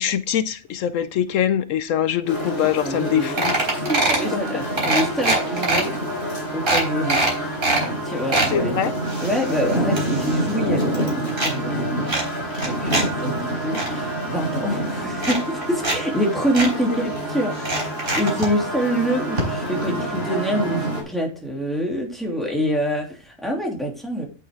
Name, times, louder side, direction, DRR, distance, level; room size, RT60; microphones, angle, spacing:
voice 1, 0.0-3.6 4.3-4.6 8.5-8.9, left 10 dB, 80° left, 1.0 m, -23 dB
sound 1, 2.3-21.0, right 1 dB, 50° left, 4.2 m, -27 dB
sound 2, 2.7-2.8 3.0-3.1 3.4-4.3 4.8-5.8 6.3-6.4 6.7-7.8 8.1-8.5 9.0-10.6 10.8-11.5 12.1-13.0 13.4-13.9 14.7-14.8 15.2-16.0 16.2-16.3 16.5-16.7 17.6-18.5 19.4-19.5 19.8-19.9, right 2 dB, 40° right, 4.7 m, -23 dB
voice 2, 2.8-3.4 4.0-5.9 6.5-7.5 8.0-8.8 9.2-12.1 12.5-24.3, equal, ahead, 2.9 m, -26 dB
9.6 x 8.4 x 3.6 m
omnidirectional pair, 1.3 m